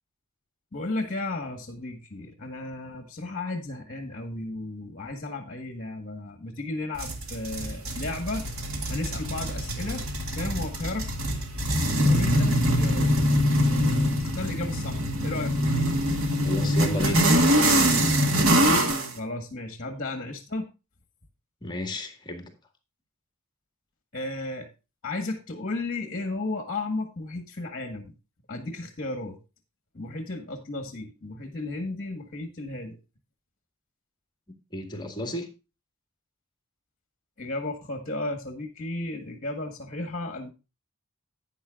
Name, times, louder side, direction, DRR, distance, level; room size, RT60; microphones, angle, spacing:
voice 1, 0.7-8.5 8.9-10.0 10.3-11.0 12.0-13.1 13.5-15.6 19.2-20.7 24.1-24.7 25.0-28.1 28.5-29.4 29.9-33.0 37.4-40.5, left 2 dB, 40° left, 1.6 m, -34 dB
sound 1, 7.0-19.1, equal, 80° right, 2.0 m, -24 dB
voice 2, 16.5-17.3 21.6-22.5 34.7-35.5, left 1 dB, 20° left, 1.9 m, -32 dB
11.5 x 9.3 x 2.5 m
head